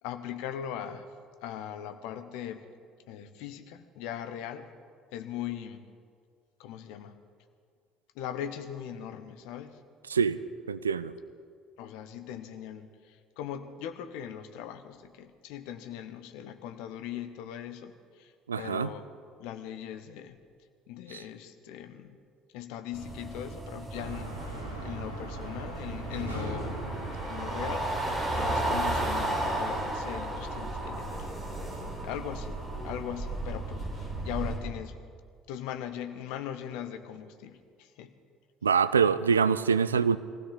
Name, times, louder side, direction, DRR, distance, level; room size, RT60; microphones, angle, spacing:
voice 1, 0.0-1.1 1.4-2.6 3.1-4.7 5.1-5.8 6.6-7.2 8.1-9.8 11.8-19.1 19.4-20.4 20.9-22.2 22.5-26.8 27.3-31.3 32.0-35.0 35.5-38.1, left 10 dB, 60° left, 10 dB, 0.9 m, -40 dB
voice 2, 10.1-10.4 10.7-11.1 18.5-18.9 21.1-21.2 38.6-40.2, right 6 dB, 80° right, 14 dB, 0.4 m, -25 dB
sound 1, 22.9-34.6, right 2 dB, 25° right, 4.4 m, -34 dB
sound 2, 23.9-29.5, equal, 90° left, 1.7 m, -40 dB
21.5 x 16.0 x 4.0 m, 2.1 s
figure-of-eight pair, 55°, 0 cm